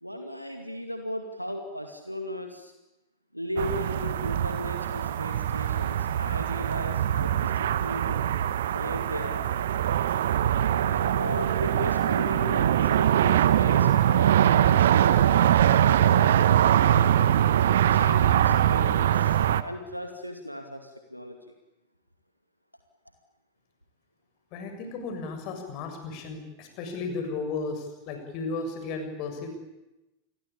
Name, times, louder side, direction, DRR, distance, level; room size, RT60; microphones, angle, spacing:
voice 1, 0.0-2.7 3.3-8.2 8.7-9.5 10.8-16.9 17.7-21.5, equal, 90° left, 5 dB, 2.4 m, -36 dB
sound 1, 3.6-19.6, right 10 dB, 60° right, 1.2 m, -22 dB
voice 2, 24.5-29.5, left 4 dB, 40° left, 6 dB, 7.2 m, -34 dB
28.5 x 22.0 x 8.7 m, 0.99 s
figure-of-eight pair, 90°, 0 cm